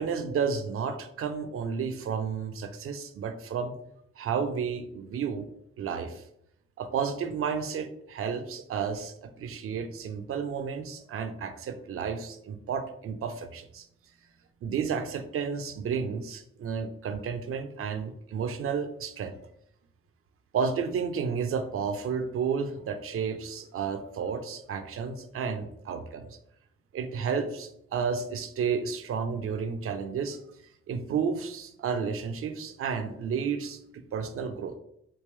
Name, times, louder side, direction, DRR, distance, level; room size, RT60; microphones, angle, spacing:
voice 1, 0.0-3.7 4.2-5.5 5.8-6.2 6.8-13.9 14.6-19.4 20.5-26.4 26.9-30.4 30.9-34.8, right 6 dB, 50° right, 9 dB, 0.5 m, -32 dB
3.5 x 2.4 x 3.2 m, 0.76 s
hypercardioid pair, 40°, 29 cm